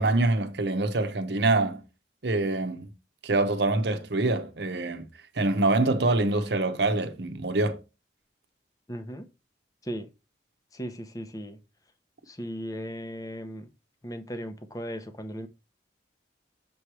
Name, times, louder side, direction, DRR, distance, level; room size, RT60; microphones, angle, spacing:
voice 1, 0.0-1.8 2.2-2.9 3.2-5.1 5.4-7.8, right 2 dB, 65° right, 0.9 m, -25 dB
voice 2, 8.9-9.3 9.8-10.1 10.7-11.6 12.3-13.7 14.0-15.5, equal, 20° left, 0.7 m, -37 dB
7.0 x 3.1 x 4.7 m
head